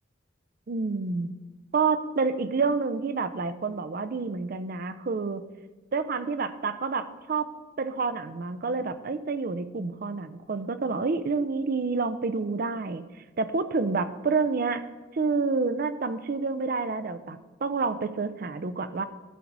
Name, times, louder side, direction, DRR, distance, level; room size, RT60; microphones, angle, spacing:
voice 1, 0.7-1.3 1.7-5.4 5.9-7.5 7.8-13.0 13.4-14.8 15.1-19.0, right 4 dB, 45° right, 12 dB, 0.4 m, -28 dB
10.0 x 3.9 x 6.1 m, 1.2 s
head